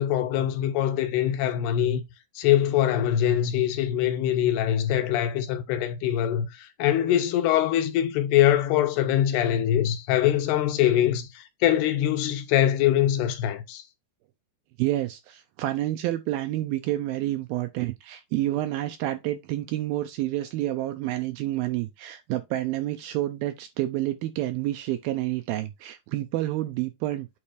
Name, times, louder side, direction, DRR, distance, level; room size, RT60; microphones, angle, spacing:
voice 1, 0.0-2.0 2.4-13.8, left 11 dB, 80° left, 2.8 m, -23 dB
voice 2, 14.8-27.3, right 15 dB, 80° right, 2.2 m, -29 dB
8.7 x 3.8 x 4.8 m
omnidirectional pair, 4.8 m